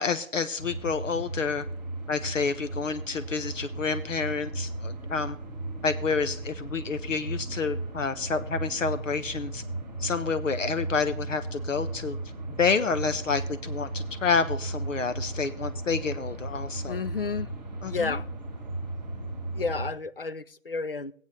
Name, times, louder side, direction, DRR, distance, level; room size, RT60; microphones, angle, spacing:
voice 1, 0.0-1.7 2.1-5.4 5.8-9.6 10.0-12.2 12.5-17.0 17.8-18.2, left 5 dB, 70° left, 0.9 m, -29 dB
sound 1, 0.6-19.9, right 2 dB, 5° right, 1.8 m, -36 dB
voice 2, 16.9-17.5 17.8-18.2 19.5-21.1, left 4 dB, 45° left, 0.5 m, -31 dB
18.5 x 8.3 x 3.2 m
hypercardioid pair, 175°, 40 cm